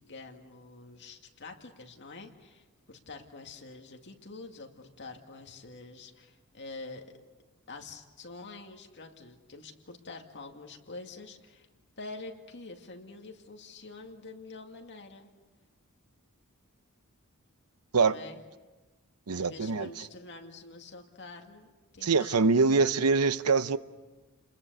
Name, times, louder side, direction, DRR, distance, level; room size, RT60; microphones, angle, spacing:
voice 1, 0.0-7.1 7.7-11.7 12.0-15.3 18.0-18.4 19.3-21.7 21.9-22.4 22.6-22.8, left 3 dB, 55° left, 2.3 m, -46 dB
voice 2, 19.3-19.9 22.0-23.8, right 4 dB, 85° right, 0.8 m, -24 dB
29.5 x 21.5 x 6.9 m
head